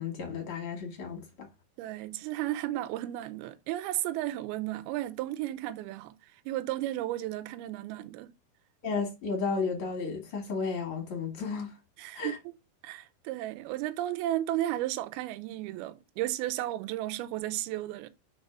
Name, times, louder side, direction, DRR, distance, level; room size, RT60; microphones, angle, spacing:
voice 1, 0.0-1.5 8.8-11.7 12.1-12.4, left 5 dB, 45° left, 2.0 m, -33 dB
voice 2, 1.8-8.3 12.0-12.6 12.8-18.1, right 14 dB, 80° right, 2.5 m, -34 dB
5.4 x 4.0 x 5.9 m
omnidirectional pair, 4.5 m